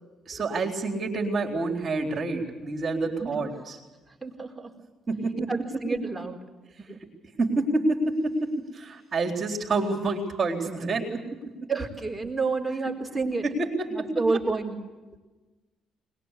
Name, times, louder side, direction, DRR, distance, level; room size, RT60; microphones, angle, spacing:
voice 1, 0.3-3.8 5.1-5.5 6.8-6.9 7.4-11.7 13.4-14.4, right 2 dB, 40° right, 0 dB, 4.0 m, -28 dB
voice 2, 4.2-4.7 5.5-6.4 6.9-7.0 11.7-13.4 13.9-14.8, right 3 dB, 10° right, 1 dB, 4.5 m, -29 dB
21.5 x 21.0 x 8.3 m, 1.2 s
supercardioid pair, 75°, 0 cm